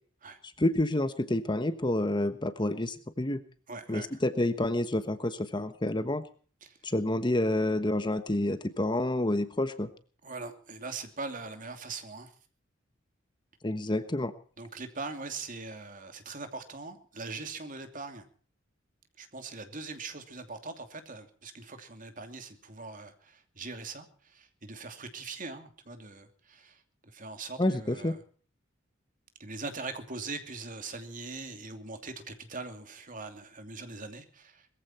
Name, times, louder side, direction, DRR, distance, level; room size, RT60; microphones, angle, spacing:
voice 1, 0.6-3.4 3.9-6.2 6.8-9.9 13.6-14.3 27.6-28.1, left 1 dB, 25° left, 11 dB, 1.2 m, -28 dB
voice 2, 3.7-4.2 6.6-6.8 10.2-12.3 14.6-18.2 19.2-28.2 29.4-34.7, right 3 dB, 45° right, 7 dB, 2.8 m, -41 dB
21.0 x 15.0 x 4.4 m, 0.43 s
head